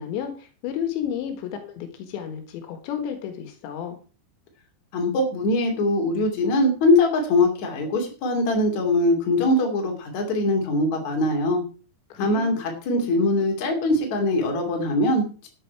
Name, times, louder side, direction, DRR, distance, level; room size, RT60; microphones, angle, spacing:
voice 1, 0.0-4.0 12.1-12.5, left 9 dB, 85° left, 7 dB, 3.7 m, -32 dB
voice 2, 4.9-11.6 12.2-15.5, left 2 dB, 45° left, 2 dB, 3.6 m, -22 dB
12.5 x 9.3 x 4.7 m, 0.36 s
omnidirectional pair, 5.0 m